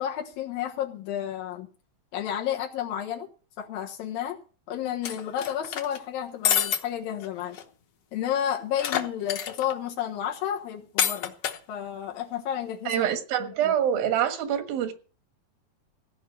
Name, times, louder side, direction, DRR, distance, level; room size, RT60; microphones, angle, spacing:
voice 1, 0.0-1.7 2.1-3.3 3.6-4.4 4.7-7.6 8.1-11.3 11.7-12.9 13.4-13.7, left 10 dB, 90° left, 3.2 m, -31 dB
sound 1, 5.0-6.0 6.4-6.8 7.2-7.3 7.5-7.6 8.8-9.7 11.0-11.6, left 9 dB, 60° left, 1.7 m, -27 dB
voice 2, 12.9-14.9, right 9 dB, 85° right, 3.2 m, -25 dB
16.0 x 5.5 x 9.2 m
omnidirectional pair, 4.0 m